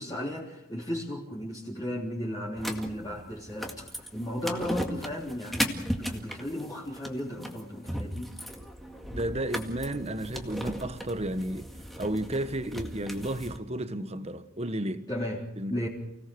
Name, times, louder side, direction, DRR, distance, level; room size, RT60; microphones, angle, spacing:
voice 1, 0.0-8.3 15.1-15.9, equal, 20° left, 3.6 m, -35 dB
sound 1, 2.6-13.6, equal, ahead, 2.0 m, -37 dB
voice 2, 9.1-11.7 12.0-15.1 15.6-15.7, right 1 dB, 30° right, 1.3 m, -32 dB
29.5 x 18.0 x 6.3 m
head